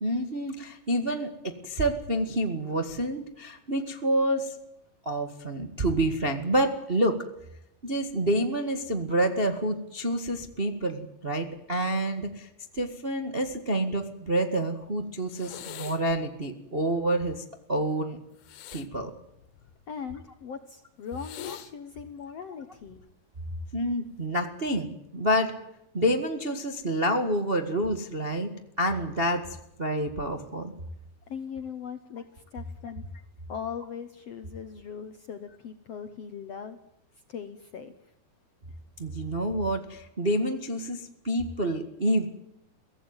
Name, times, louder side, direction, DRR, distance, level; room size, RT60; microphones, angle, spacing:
voice 1, 0.0-4.6 5.0-7.2 7.8-12.5 12.7-18.2 18.7-19.1 21.5-21.6 23.7-25.5 25.9-28.5 28.8-29.5 29.8-30.7 39.0-42.3, right 1 dB, 30° right, 6 dB, 1.0 m, -28 dB
sound 1, 15.3-16.2 18.4-19.9 21.1-21.7 22.8-23.1, left 11 dB, 85° left, 3.4 m, -43 dB
voice 2, 19.9-23.0 31.3-33.0 33.5-36.8 37.3-37.9, left 7 dB, 60° left, 9 dB, 1.7 m, -39 dB
23.5 x 17.0 x 9.0 m, 0.83 s
omnidirectional pair, 4.4 m